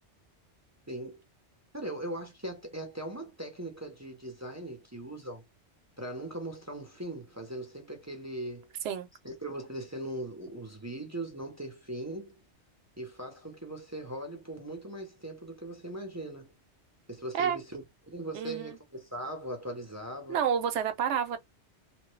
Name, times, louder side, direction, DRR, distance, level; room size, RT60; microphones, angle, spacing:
voice 1, 0.9-1.2 1.7-5.4 6.0-8.7 9.2-12.3 13.0-16.5 17.1-20.5, right 1 dB, 20° right, 0.5 m, -39 dB
voice 2, 18.3-18.7 20.3-21.4, right 8 dB, 75° right, 0.9 m, -29 dB
3.0 x 2.1 x 3.1 m
omnidirectional pair, 1.2 m